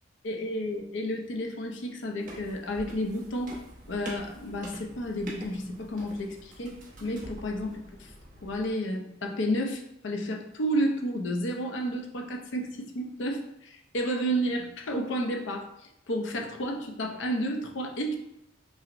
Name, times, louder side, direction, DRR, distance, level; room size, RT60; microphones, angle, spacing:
voice 1, 0.2-3.6 3.9-8.1 8.4-18.1, equal, 65° left, 2 dB, 0.5 m, -31 dB
sound 1, 2.2-8.7, right 1 dB, 45° right, 0.9 m, -45 dB
5.5 x 2.1 x 2.5 m, 0.80 s
head